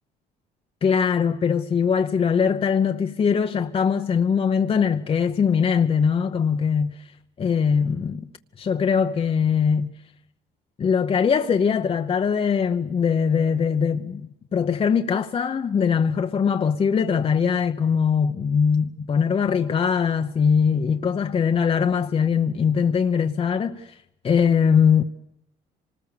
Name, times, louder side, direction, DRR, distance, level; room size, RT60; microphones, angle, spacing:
voice 1, 0.8-7.0 7.4-8.3 8.6-9.9 10.8-24.0 24.2-25.0, left 6 dB, 35° left, 0.9 m, -21 dB
25.5 x 20.0 x 6.7 m
cardioid pair, 110°, 17 cm